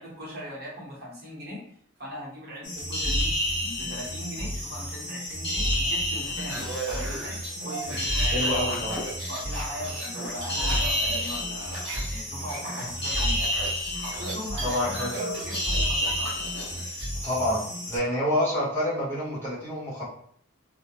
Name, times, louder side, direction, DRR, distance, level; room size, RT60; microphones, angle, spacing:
voice 1, 0.0-1.6 2.0-3.3 3.6-8.8 9.3-13.4 13.9-16.4, equal, 50° right, -5 dB, 0.9 m, -39 dB
sound 1, 2.6-18.0, equal, 50° left, 0.7 m, -30 dB
sound 2, 6.2-12.1 12.4-17.1, right 1 dB, 75° right, 0.9 m, -36 dB
voice 2, 8.3-9.0 14.6-15.1 17.2-20.0, left 1 dB, 10° left, -10 dB, 0.8 m, -27 dB
2.3 x 2.1 x 2.8 m, 0.62 s
head